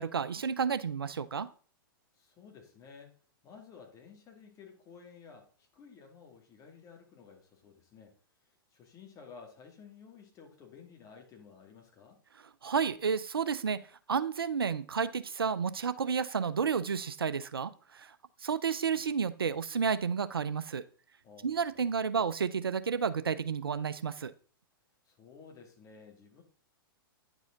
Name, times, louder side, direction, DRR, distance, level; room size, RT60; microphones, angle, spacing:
voice 1, 0.0-1.5 12.6-13.8 14.1-18.1 18.4-20.8 21.4-24.3, right 6 dB, 80° right, 0.6 m, -31 dB
voice 2, 2.1-3.2 3.4-8.2 8.7-12.2 18.9-19.1 21.2-21.8 25.1-26.4, left 6 dB, 30° left, 2.3 m, -54 dB
9.7 x 4.9 x 3.8 m
figure-of-eight pair, 110°, 12 cm